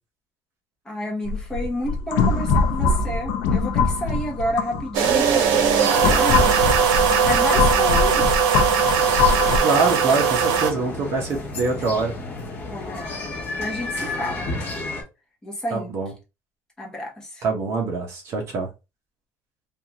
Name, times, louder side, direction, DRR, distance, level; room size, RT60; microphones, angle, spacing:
voice 1, 0.8-6.7 7.2-8.4 12.7-13.2 13.6-14.5 15.4-15.9 16.8-17.4, equal, 10° left, 1.0 m, -30 dB
sound 1, 1.3-5.1 5.7-9.6, left 5 dB, 65° left, 0.5 m, -22 dB
sound 2, 4.9-10.7, right 7 dB, 90° right, 0.8 m, -19 dB
sound 3, 8.9-15.0, left 2 dB, 35° left, 1.1 m, -32 dB
voice 2, 9.6-12.1 15.7-16.1 17.4-18.7, right 4 dB, 45° right, 1.0 m, -24 dB
3.6 x 2.4 x 2.9 m
cardioid pair, 180°, 7 cm